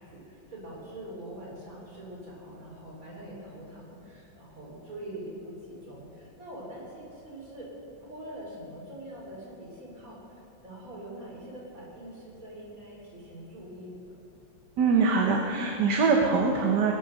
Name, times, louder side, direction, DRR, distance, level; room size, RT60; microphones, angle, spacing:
voice 1, 0.0-7.7 8.0-10.2 10.6-14.1, right 1 dB, 45° right, -4 dB, 4.0 m, -43 dB
voice 2, 14.8-16.9, right 4 dB, 65° right, 1 dB, 1.6 m, -23 dB
20.5 x 7.7 x 6.5 m, 2.9 s
omnidirectional pair, 2.1 m